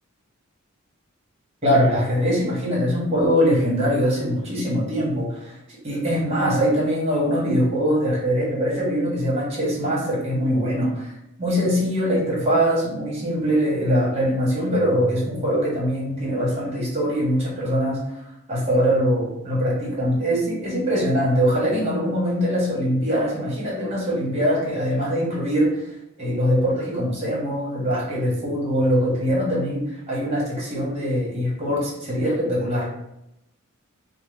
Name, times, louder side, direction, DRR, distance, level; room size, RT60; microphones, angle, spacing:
voice 1, 1.6-5.6 5.8-11.1 11.4-18.0 18.5-25.7 26.2-32.9, equal, 30° right, -4 dB, 1.3 m, -22 dB
4.5 x 2.1 x 3.4 m, 0.85 s
head